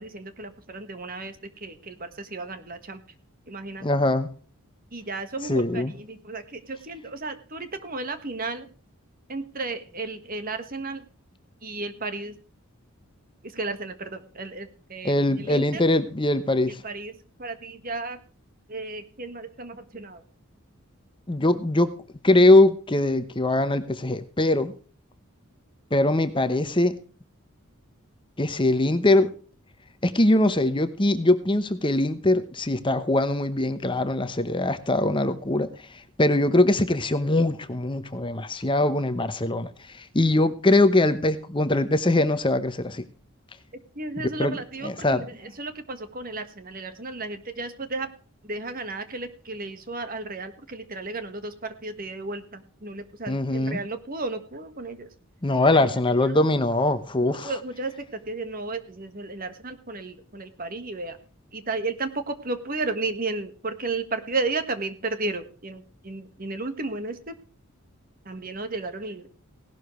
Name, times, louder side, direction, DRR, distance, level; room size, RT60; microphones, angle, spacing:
voice 1, 0.0-3.0 3.5-3.9 4.9-8.7 9.3-11.1 11.6-12.3 13.4-15.8 16.8-17.1 17.4-18.2 18.7-20.2 21.6-21.7 43.9-48.1 48.4-55.1 55.7-55.9 56.2-56.3 57.4-61.2 61.5-67.3 68.2-69.3, right 3 dB, 40° right, 1.6 m, -33 dB
voice 2, 3.8-4.3 5.5-5.9 15.0-16.8 21.3-21.9 22.2-24.7 25.9-26.9 28.4-29.3 30.0-35.7 36.2-43.0 44.2-44.6 44.8-45.2 53.3-53.8 55.4-57.5, left 2 dB, 25° left, 0.9 m, -22 dB
17.5 x 12.0 x 3.2 m
head